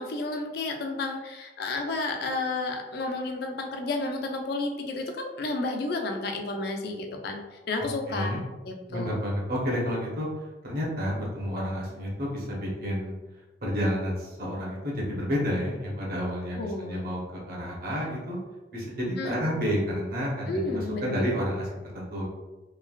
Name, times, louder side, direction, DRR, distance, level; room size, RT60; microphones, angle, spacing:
voice 1, 0.0-9.1 16.6-17.1 19.2-19.4 20.5-21.3, left 2 dB, 60° left, 3 dB, 0.4 m, -31 dB
voice 2, 7.8-8.4 8.9-10.3 10.6-13.2 13.6-18.4 18.7-22.3, equal, 55° right, -4 dB, 0.9 m, -30 dB
3.1 x 2.2 x 2.3 m, 1.1 s
head